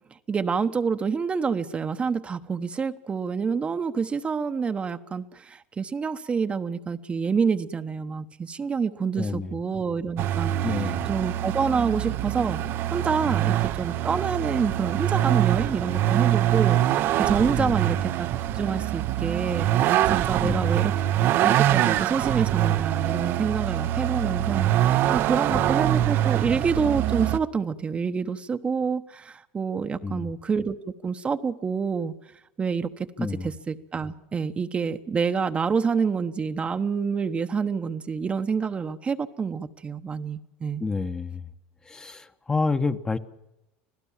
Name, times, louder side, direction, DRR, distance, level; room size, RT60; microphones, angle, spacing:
voice 1, 0.3-12.6 12.9-16.8 17.2-18.3 18.5-20.9 21.4-32.1 32.6-33.1 33.4-40.8, right 5 dB, 25° right, 8 dB, 1.1 m, -27 dB
voice 2, 9.2-9.5 10.6-11.1 17.6-17.9 20.4-20.7 25.5-25.7 30.0-30.3 33.2-33.5 40.8-41.4 41.9-43.2, left 4 dB, 15° left, 8 dB, 1.2 m, -29 dB
Vehicle, 10.2-27.4, right 13 dB, 55° right, 0.9 m, -24 dB
26.0 x 16.5 x 7.3 m, 0.89 s
supercardioid pair, 110°, 5 cm